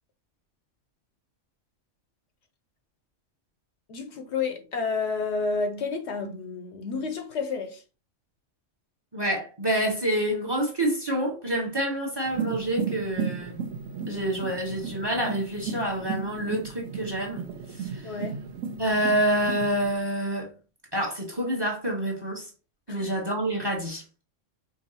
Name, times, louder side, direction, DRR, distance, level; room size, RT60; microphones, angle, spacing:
voice 1, 3.9-7.8 18.0-18.6 22.9-23.1, left 4 dB, 65° left, 0.8 m, -30 dB
voice 2, 9.1-13.6 14.1-17.5 17.8-18.1 18.8-20.5 20.9-22.5 22.9-24.2, right 1 dB, 20° right, 0.9 m, -27 dB
sound 1, 12.3-20.0, right 6 dB, 85° right, 1.0 m, -35 dB
4.7 x 2.6 x 2.7 m
omnidirectional pair, 1.3 m